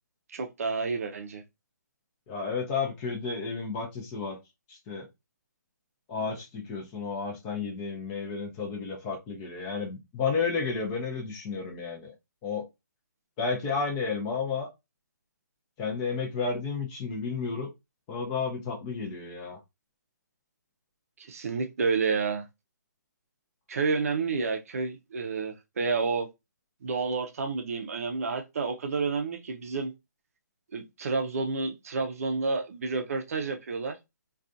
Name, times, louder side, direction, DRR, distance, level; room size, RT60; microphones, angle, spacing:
voice 1, 0.3-1.4 21.2-22.5 23.7-26.3 26.8-29.9 30.7-34.0, right 4 dB, 50° right, 0.5 m, -30 dB
voice 2, 2.3-4.4 4.7-5.1 6.1-12.1 12.4-12.6 13.4-14.7 15.8-17.7 18.1-19.6, left 5 dB, 20° left, 0.5 m, -32 dB
2.4 x 2.3 x 2.5 m
figure-of-eight pair, 150°, 10 cm